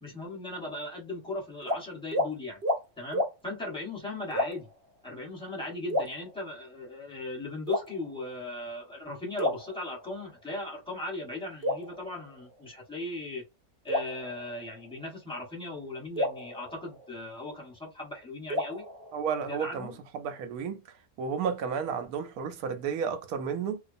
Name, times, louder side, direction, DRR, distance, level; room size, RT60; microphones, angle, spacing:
voice 1, 0.0-2.6 3.0-4.7 5.0-13.4 13.8-18.8 19.5-20.0, left 2 dB, 5° left, 1.0 m, -38 dB
sound 1, 1.6-1.8 2.1-2.3 2.6-2.8 3.1-3.3 4.3-4.8 5.9-6.7 7.7-8.4 9.4-10.4 11.6-12.8 13.9-15.1 16.2-17.6 18.5-19.7, left 1 dB, 55° right, 0.7 m, -33 dB
voice 2, 19.1-20.8 21.2-23.8, right 6 dB, 80° right, 1.1 m, -32 dB
2.6 x 2.2 x 2.5 m
omnidirectional pair, 1.5 m